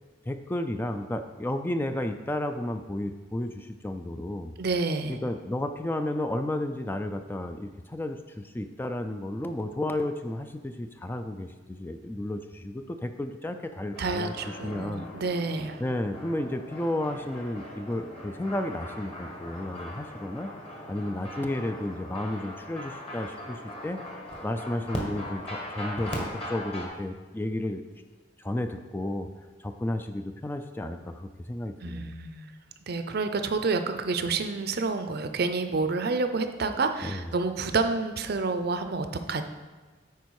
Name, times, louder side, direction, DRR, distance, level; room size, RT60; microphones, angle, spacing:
voice 1, 0.3-4.5 5.1-15.1 15.8-20.5 20.9-24.0 24.4-27.8 28.4-29.3 29.6-32.2 37.0-37.3, left 1 dB, 10° left, 7 dB, 0.3 m, -32 dB
voice 2, 4.6-5.2 14.0-15.8 31.8-32.5 32.9-39.4, right 3 dB, 55° right, 8 dB, 0.6 m, -29 dB
sound 1, 13.9-26.9, equal, 30° left, 1.4 m, -39 dB
9.4 x 4.4 x 4.7 m, 1.4 s
head